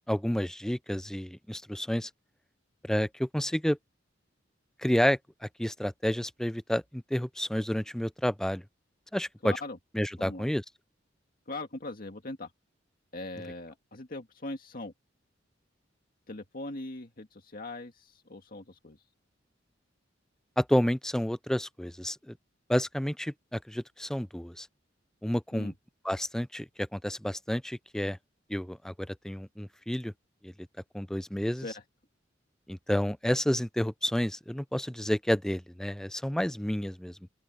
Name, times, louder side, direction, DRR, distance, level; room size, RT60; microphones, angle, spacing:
voice 1, 0.1-2.1 2.8-3.8 4.8-8.6 9.1-9.5 9.9-10.6 20.6-22.4 22.7-24.7 25.2-25.7 26.0-28.2 28.5-30.1 30.4-30.5 30.9-31.6 32.7-37.2, equal, 5° left, 0.4 m, -30 dB
voice 2, 9.4-9.8 10.2-10.5 11.5-12.5 13.1-14.9 16.3-19.0 25.5-25.7 31.6-31.8, left 2 dB, 50° left, 2.0 m, -40 dB
open air
head